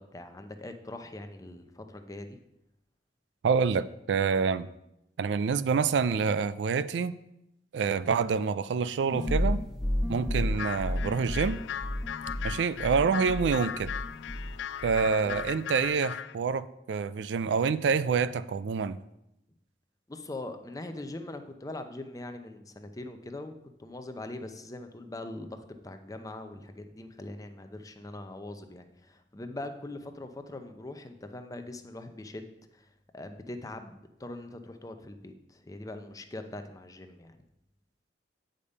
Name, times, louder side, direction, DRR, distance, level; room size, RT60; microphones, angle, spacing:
voice 1, 0.0-2.4 15.2-15.4 20.1-32.9 33.1-37.4, left 2 dB, 20° left, 7 dB, 0.6 m, -42 dB
voice 2, 3.4-4.7 5.2-7.2 7.7-9.6 10.1-11.6 12.4-13.9 14.8-19.0, right 5 dB, 75° right, 16 dB, 0.3 m, -27 dB
sound 1, 9.1-14.6 14.8-15.5, left 1 dB, ahead, 1.2 m, -32 dB
sound 2, 10.5-16.4, left 9 dB, 80° left, 0.3 m, -38 dB
8.5 x 5.1 x 5.4 m, 0.84 s
head